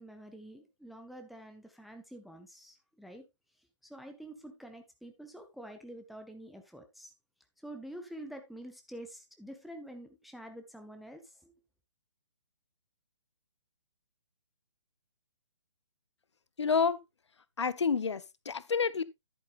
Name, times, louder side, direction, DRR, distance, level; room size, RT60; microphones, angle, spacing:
voice 1, 0.0-3.2 3.8-7.1 7.6-11.5, right 1 dB, ahead, 0.5 m, -47 dB
voice 2, 16.6-17.0 17.6-19.0, left 5 dB, 60° left, 0.7 m, -29 dB
10.5 x 8.3 x 2.4 m
figure-of-eight pair, 135°, 16 cm